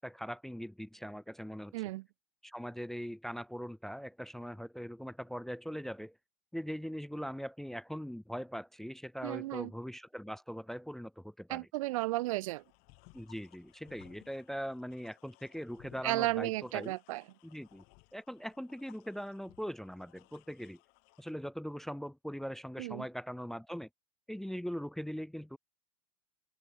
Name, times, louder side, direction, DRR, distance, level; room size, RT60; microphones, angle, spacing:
voice 1, 0.0-1.7 2.4-6.1 6.5-11.7 13.1-17.0 17.4-17.8 18.1-20.8 21.2-23.9 24.3-25.6, equal, ahead, 0.6 m, -41 dB
voice 2, 1.7-2.0 9.2-9.7 11.5-12.6 16.0-17.2 22.8-23.0, right 19 dB, 65° right, 0.7 m, -34 dB
sound 1, 12.5-21.3, left 31 dB, 55° left, 6.2 m, -63 dB
open air
hypercardioid pair, 100°, 18 cm